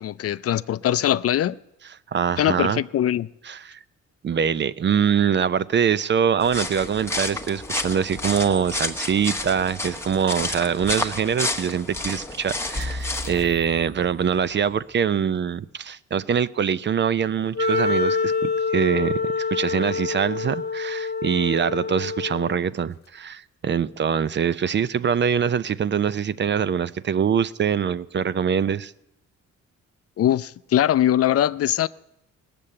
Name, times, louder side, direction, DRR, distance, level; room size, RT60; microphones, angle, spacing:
voice 1, 0.0-1.6 2.4-3.3 30.2-31.9, left 11 dB, 50° left, 0.5 m, -21 dB
voice 2, 2.1-2.8 3.5-3.8 4.2-28.9, right 7 dB, 40° right, 0.5 m, -24 dB
sound 1, 6.4-13.4, left 2 dB, 10° left, 1.2 m, -30 dB
sound 2, 12.7-14.8, left 1 dB, 10° right, 1.3 m, -35 dB
Wind instrument woodwind instrument, 17.6-22.7, left 4 dB, 35° left, 1.3 m, -26 dB
18.0 x 6.8 x 8.6 m
cardioid pair, 90°, 30 cm